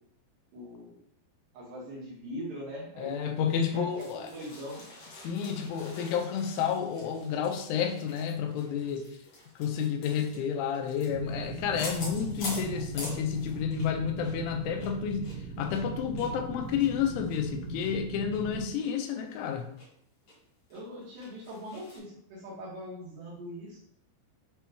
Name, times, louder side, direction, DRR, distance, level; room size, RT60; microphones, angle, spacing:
voice 1, 0.5-1.0 1.5-3.4 3.7-4.9 20.7-23.8, equal, 70° right, -6 dB, 2.8 m, -41 dB
voice 2, 3.0-4.3 5.2-9.1 9.6-15.3 15.6-19.7, left 7 dB, 85° left, 4 dB, 2.9 m, -30 dB
sound 1, 3.7-14.0 14.2-14.4 14.7-17.9 18.3-18.4 18.8-18.9 19.3-19.9 20.3-20.4 20.7-22.0, left 2 dB, 65° left, 1.5 m, -45 dB
sound 2, 11.1-18.7, right 5 dB, 90° right, 2.3 m, -39 dB
8.0 x 3.0 x 2.2 m, 0.71 s
omnidirectional pair, 5.3 m